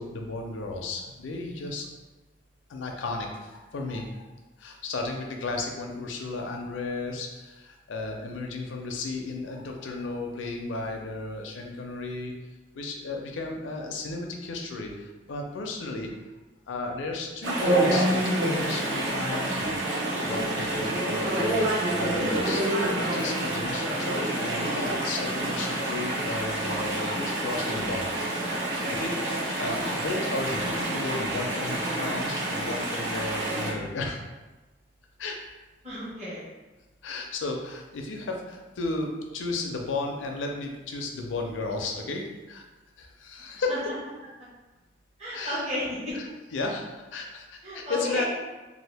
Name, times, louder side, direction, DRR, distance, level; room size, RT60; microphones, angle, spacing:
voice 1, 0.0-1.9 2.7-4.2 4.6-12.3 12.7-16.1 16.7-19.7 20.2-28.1 28.5-34.2 35.2-35.4 37.0-42.6 43.0-43.9 45.3-45.6 46.1-48.3, left 3 dB, 85° left, 2 dB, 0.5 m, -34 dB
Chatter / Stream, 17.4-33.7, right 1 dB, 70° right, 0.8 m, -28 dB
voice 2, 35.8-36.4 43.4-43.8 45.2-46.3 47.6-48.3, left 1 dB, 35° right, -10 dB, 1.0 m, -33 dB
2.7 x 2.4 x 3.3 m, 1.2 s
head